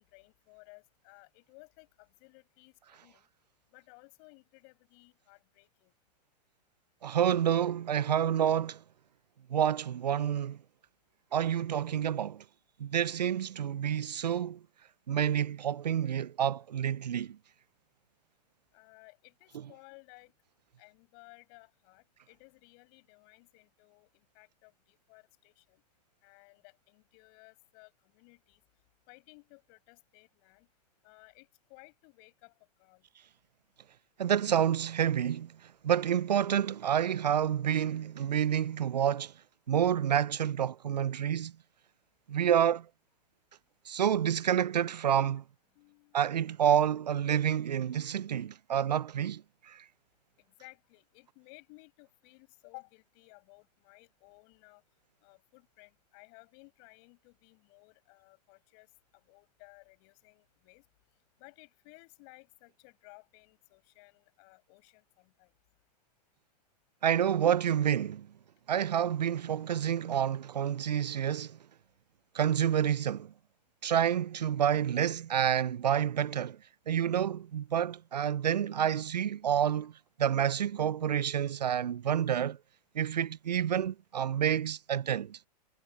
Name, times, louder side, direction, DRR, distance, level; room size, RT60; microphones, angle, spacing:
voice 1, 0.0-3.3 3.7-5.9 18.7-20.3 20.8-25.8 26.2-28.6 29.1-30.7 31.0-32.5 32.8-33.1 45.7-46.2 50.4-54.8 55.2-60.8 61.4-65.5, left 40 dB or more, 45° left, 6.0 m, -58 dB
voice 2, 7.0-8.8 9.5-10.6 11.3-12.4 12.8-14.6 15.1-17.4 34.2-35.5 35.8-39.3 39.7-41.5 42.3-42.9 43.9-45.4 46.1-49.8 67.0-68.3 68.7-71.6 72.3-73.3 73.8-76.6 76.9-79.9 80.2-82.6 82.9-85.4, right 9 dB, 80° right, 0.6 m, -28 dB
hypercardioid pair, 105°, 21 cm